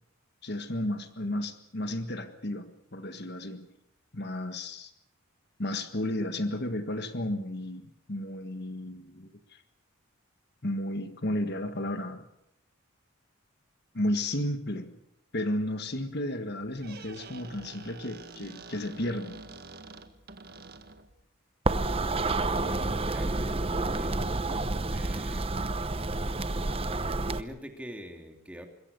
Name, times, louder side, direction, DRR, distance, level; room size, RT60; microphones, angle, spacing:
voice 1, 0.4-3.7 4.1-4.9 5.6-9.6 10.6-12.3 13.9-14.9 15.3-19.4, left 1 dB, 50° left, 8 dB, 1.6 m, -33 dB
Squeak, 16.6-21.2, right 3 dB, 45° right, 1.7 m, -47 dB
sound 1, 21.7-27.4, right 2 dB, 25° right, 0.9 m, -29 dB
voice 2, 23.0-23.4 23.7-24.4 24.9-25.5 27.3-28.7, equal, 5° right, 4 dB, 2.7 m, -44 dB
26.0 x 22.0 x 6.9 m, 0.78 s
head